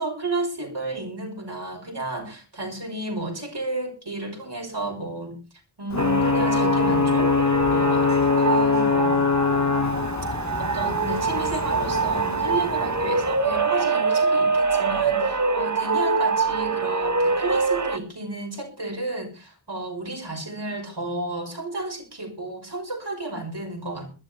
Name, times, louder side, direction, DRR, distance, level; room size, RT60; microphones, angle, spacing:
voice 1, 0.0-5.4 5.8-9.2 10.6-24.1, right 2 dB, 55° right, 1 dB, 6.4 m, -32 dB
Ocean / Boat Water vehicle / Alarm, 5.9-13.5, left 5 dB, 35° left, 0.8 m, -23 dB
sound 1, 6.0-18.0, right 4 dB, 35° right, 1.3 m, -24 dB
21.5 x 12.5 x 3.4 m, 0.33 s
wide cardioid pair, 70°, 50 cm